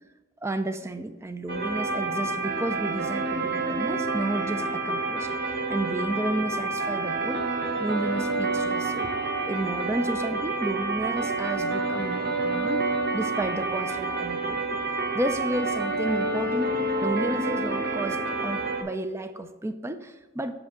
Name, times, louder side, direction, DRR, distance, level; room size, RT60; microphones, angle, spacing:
voice 1, 0.4-7.4 7.8-9.1 9.4-14.6 15.1-20.5, right 1 dB, 15° right, 9 dB, 0.4 m, -32 dB
sound 1, 1.5-18.8, right 2 dB, 55° right, 1.0 m, -28 dB
7.8 x 6.2 x 3.7 m, 1.2 s
head